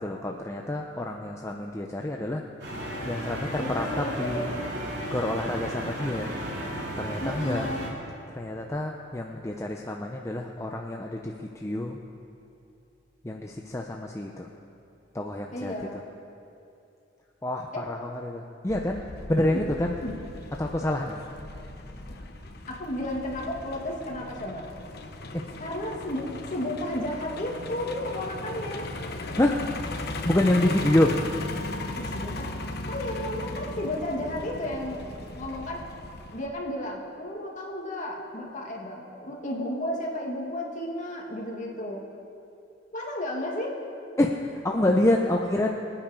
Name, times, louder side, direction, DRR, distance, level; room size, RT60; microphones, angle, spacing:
voice 1, 0.0-2.4 3.0-4.5 5.1-6.3 7.0-7.7 8.3-12.0 13.2-14.5 15.1-16.0 17.4-19.0 19.3-19.9 20.6-21.2 25.3-25.4 29.4-29.6 30.2-31.1 44.2-45.8, left 1 dB, 15° left, 1 dB, 0.7 m, -27 dB
sound 1, 2.6-7.9, equal, 60° right, 3.4 m, -34 dB
voice 2, 3.6-4.7 5.4-5.6 7.2-7.8 15.5-16.0 17.7-17.8 19.5-19.6 20.0-20.1 22.7-24.7 25.6-28.9 32.0-32.6 32.9-35.0 35.3-35.8 36.3-42.1 42.9-43.8, left 1 dB, 40° left, -1 dB, 2.4 m, -33 dB
Truck, 18.7-36.5, left 2 dB, 60° left, 1.1 m, -37 dB
24.0 x 8.9 x 5.3 m, 2.7 s
head